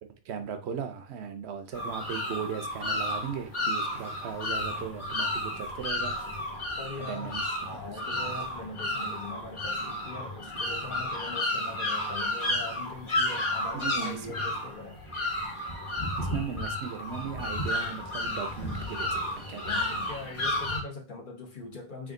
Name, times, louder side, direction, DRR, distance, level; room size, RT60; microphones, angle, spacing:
voice 1, 0.2-6.2 7.0-7.4 13.7-14.3 16.2-19.9, right 7 dB, 85° right, 8 dB, 0.9 m, -37 dB
sound 1, 1.7-20.8, left 1 dB, 30° left, 1.1 m, -32 dB
voice 2, 6.8-15.0 19.6-22.1, left 3 dB, 55° left, 1 dB, 1.1 m, -42 dB
3.4 x 2.5 x 3.7 m, 0.32 s
omnidirectional pair, 1.1 m